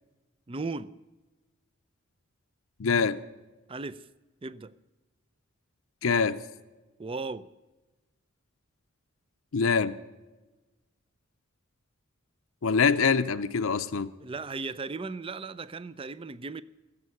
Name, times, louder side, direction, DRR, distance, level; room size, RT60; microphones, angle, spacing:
voice 1, 0.5-0.9 3.7-4.1 4.4-4.7 7.0-7.5 14.2-16.6, right 3 dB, 25° right, 0.4 m, -36 dB
voice 2, 2.8-3.2 6.0-6.4 9.5-9.9 12.6-14.1, left 5 dB, 70° left, 0.6 m, -24 dB
16.0 x 7.4 x 9.7 m
head